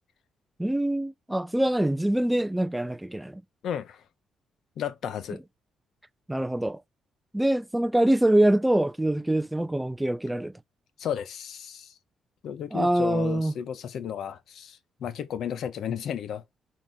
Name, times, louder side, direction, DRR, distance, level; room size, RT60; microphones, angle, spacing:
voice 1, 0.6-3.4 6.3-6.8 7.3-10.5 12.7-13.5, right 1 dB, 5° right, 0.5 m, -24 dB
voice 2, 3.6-4.0 4.8-5.4 11.0-11.9 12.4-16.4, left 9 dB, 70° left, 1.0 m, -33 dB
6.3 x 4.2 x 3.7 m
cardioid pair, 105°, 0 cm